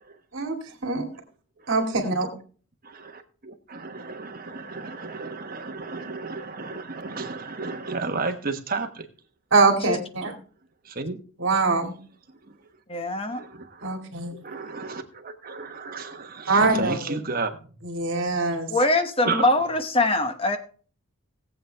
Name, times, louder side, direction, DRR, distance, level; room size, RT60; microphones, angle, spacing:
voice 1, 0.3-1.0 1.7-2.3 9.5-10.3 11.4-11.9 13.8-14.3 16.5-17.2 17.8-18.7, right 3 dB, 55° right, 2.4 m, -23 dB
voice 2, 2.8-9.1 10.8-11.2 13.3-13.9 14.4-17.5 19.2-19.5, right 4 dB, 40° right, 1.2 m, -32 dB
voice 3, 12.9-13.4 18.7-20.6, left 2 dB, 25° left, 1.0 m, -23 dB
18.0 x 7.9 x 3.4 m
head